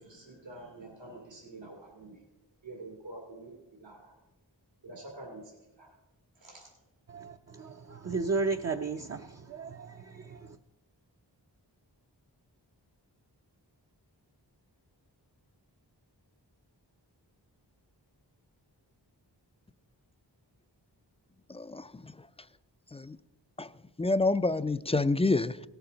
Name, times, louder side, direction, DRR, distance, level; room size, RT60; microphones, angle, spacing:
voice 1, 0.0-2.2 2.6-4.1 4.8-6.0 6.3-6.7, right 2 dB, 85° right, 2.4 m, -47 dB
voice 2, 7.1-10.6, right 4 dB, 35° right, 0.5 m, -34 dB
voice 3, 21.5-22.3 22.9-23.2 23.6-23.7 24.0-25.6, left 3 dB, 15° left, 0.3 m, -28 dB
17.5 x 7.1 x 3.9 m
wide cardioid pair, 40°, 43 cm